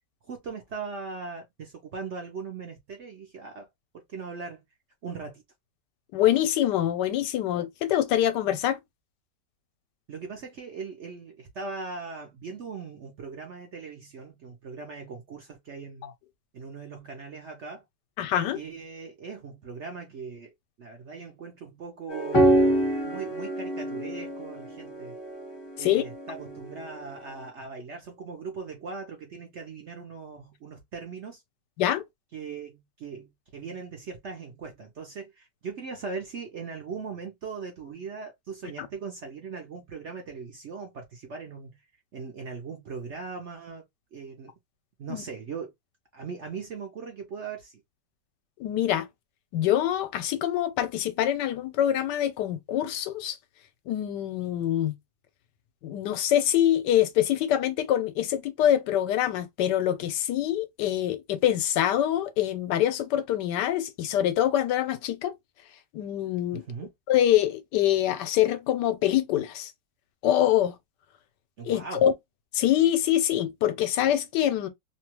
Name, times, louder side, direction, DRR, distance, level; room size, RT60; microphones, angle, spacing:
voice 1, 0.3-3.7 3.9-4.6 5.0-5.4 10.1-16.1 16.5-17.8 18.5-20.5 20.8-22.8 23.0-25.2 25.8-31.4 32.3-41.8 42.1-43.8 44.1-44.5 45.0-45.7 46.1-47.7 66.5-66.9 71.6-72.0, right 5 dB, 60° right, 0.8 m, -39 dB
voice 2, 6.1-8.8 18.2-18.6 25.8-26.0 31.8-32.0 38.8-38.9 45.1-45.2 48.6-49.1 49.5-53.4 53.9-54.9 55.8-65.3 65.9-66.6 67.1-69.7 70.2-70.7 71.6-72.1 72.5-74.7, left 11 dB, 80° left, 1.2 m, -25 dB
sound 1, 22.1-27.1, right 1 dB, 20° left, 0.7 m, -26 dB
2.9 x 2.2 x 2.9 m
omnidirectional pair, 1.8 m